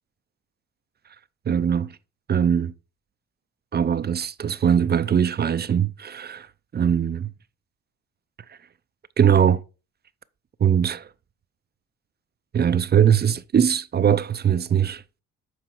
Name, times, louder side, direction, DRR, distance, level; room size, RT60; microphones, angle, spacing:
voice 1, 1.5-2.0 2.3-2.7 3.7-6.5 6.7-7.3 9.2-9.6 10.6-11.1 12.5-15.0, right 8 dB, 35° right, 0.5 m, -21 dB
7.9 x 4.6 x 4.4 m
cardioid pair, 90°, 30 cm